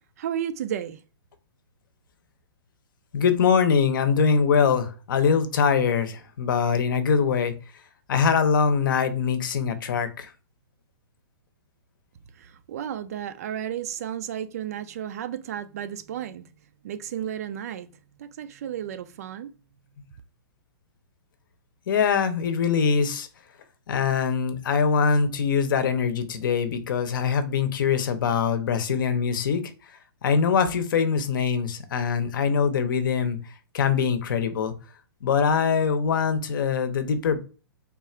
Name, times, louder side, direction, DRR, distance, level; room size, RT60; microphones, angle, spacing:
voice 1, 0.2-1.0 12.4-16.5 16.8-17.9 18.2-19.5, right 10 dB, 40° right, 0.4 m, -33 dB
voice 2, 3.1-7.5 8.1-10.3 21.9-23.3 23.9-29.6 30.2-33.4 33.7-34.7 35.2-37.4, left 6 dB, 55° left, 0.7 m, -23 dB
3.6 x 2.4 x 4.3 m
hypercardioid pair, 165°, 13 cm